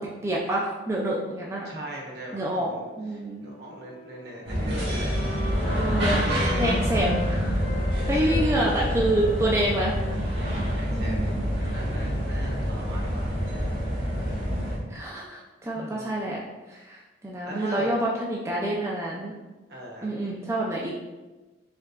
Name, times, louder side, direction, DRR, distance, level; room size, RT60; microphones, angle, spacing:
voice 1, 0.0-1.7 2.3-2.7 3.0-3.5 5.8-6.3 6.6-7.6 8.1-9.9 10.9-11.5 14.4-16.4 16.7-17.0 17.2-19.3 20.0-20.9, right 1 dB, 15° right, -4 dB, 0.4 m, -27 dB
voice 2, 1.6-2.8 3.1-5.2 5.6-6.9 7.9-8.4 10.7-13.4 15.7-16.2 17.4-17.9 19.7-20.2, equal, 60° right, -2 dB, 1.0 m, -39 dB
Wind instrument woodwind instrument, 2.4-7.3 7.6-12.9, left 2 dB, 50° left, 1.1 m, -41 dB
sound 1, 4.4-14.8, equal, 80° right, 1.5 m, -27 dB
4.6 x 3.4 x 2.4 m, 1.1 s
head